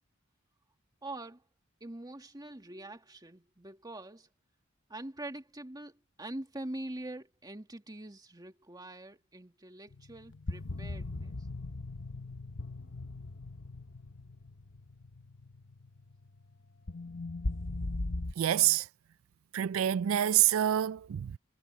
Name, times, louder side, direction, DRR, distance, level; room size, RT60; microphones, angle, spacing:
voice 1, 1.0-1.5 1.8-4.3 4.9-11.4, right 1 dB, 20° right, 2.1 m, -44 dB
sound 1, 9.9-18.3, left 2 dB, 65° left, 1.0 m, -39 dB
voice 2, 18.4-18.9 19.5-21.4, right 11 dB, 80° right, 0.3 m, -27 dB
head